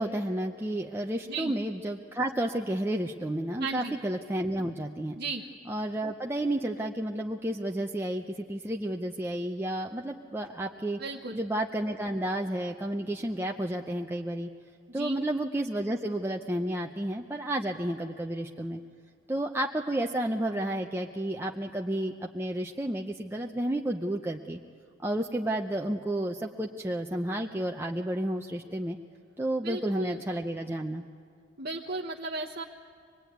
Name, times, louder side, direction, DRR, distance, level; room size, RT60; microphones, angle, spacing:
voice 1, 0.0-5.2 5.7-11.0 11.3-14.5 14.9-18.8 19.3-24.6 25.0-29.0 29.4-31.0, right 1 dB, 10° right, 1 dB, 0.6 m, -31 dB
voice 2, 3.6-4.0 5.2-5.4 11.0-11.4 14.9-15.2 29.6-30.2 31.6-32.6, right 3 dB, 50° right, -2 dB, 1.0 m, -35 dB
24.5 x 20.5 x 9.3 m, 2.3 s
head